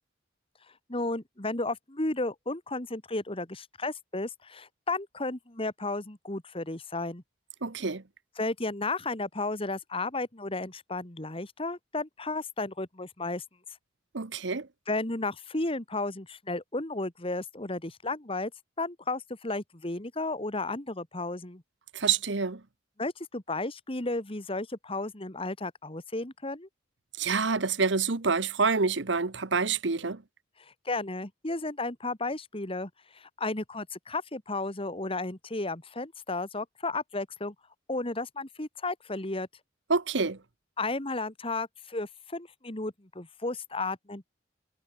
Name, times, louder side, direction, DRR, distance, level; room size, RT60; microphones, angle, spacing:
voice 1, 0.9-7.2 8.4-13.4 14.9-18.5 18.8-21.6 23.0-26.7 30.6-37.5 37.9-39.5 40.8-44.4, left 2 dB, 30° left, 2.1 m, -33 dB
voice 2, 7.6-8.0 14.1-14.7 21.9-22.6 27.2-30.2 39.9-40.4, right 4 dB, 65° right, 1.1 m, -27 dB
head